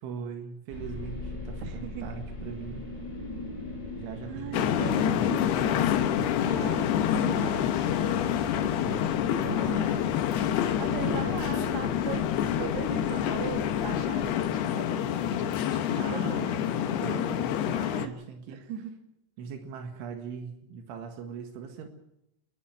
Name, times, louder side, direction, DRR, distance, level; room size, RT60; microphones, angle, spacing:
voice 1, 0.0-2.9 3.9-6.1 8.5-9.1 10.9-11.3 16.0-18.6 19.4-21.9, right 6 dB, 80° right, 6 dB, 4.1 m, -40 dB
sound 1, 0.7-14.5, left 1 dB, 10° left, 4.0 m, -41 dB
voice 2, 1.6-2.1 4.3-5.3 6.5-7.9 9.3-10.1 10.5-12.2 12.6-16.6 17.8-18.1 18.5-18.9, right 7 dB, 65° right, 6 dB, 4.0 m, -39 dB
sound 2, 4.5-18.1, left 10 dB, 70° left, 2.8 m, -27 dB
29.0 x 11.5 x 7.7 m, 0.84 s
omnidirectional pair, 5.5 m